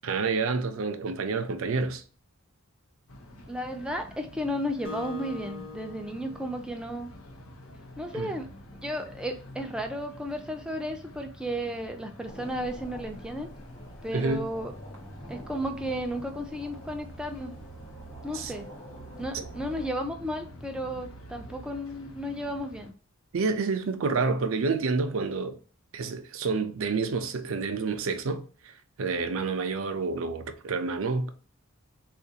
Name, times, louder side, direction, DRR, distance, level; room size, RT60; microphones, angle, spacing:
voice 1, 0.0-2.0 8.1-8.3 14.1-14.5 18.3-18.5 19.3-19.4 23.3-25.5 25.9-31.3, right 4 dB, 70° right, 0.5 m, -29 dB
sound 1, 3.1-22.9, equal, 85° left, 0.7 m, -47 dB
voice 2, 3.5-7.1 8.0-8.5 8.8-13.5 14.0-14.7 15.3-17.6 18.2-18.7 19.2-22.9, equal, 5° right, 0.4 m, -34 dB
Acoustic guitar, 4.8-7.6, left 3 dB, 40° left, 0.8 m, -43 dB
sound 2, 12.2-19.9, equal, 60° left, 1.1 m, -47 dB
3.7 x 2.4 x 2.7 m
head